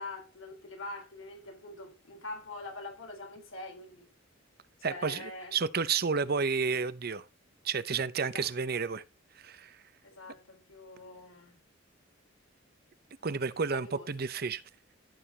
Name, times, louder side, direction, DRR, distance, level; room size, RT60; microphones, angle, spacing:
voice 1, 0.0-4.1 4.8-5.6 8.2-8.9 10.0-11.6 13.7-14.3, left 2 dB, 80° left, 3.8 m, -44 dB
voice 2, 4.8-7.2 7.6-9.0 9.4-9.7 13.2-14.6, right 5 dB, 50° right, 0.7 m, -31 dB
14.0 x 6.9 x 2.8 m
head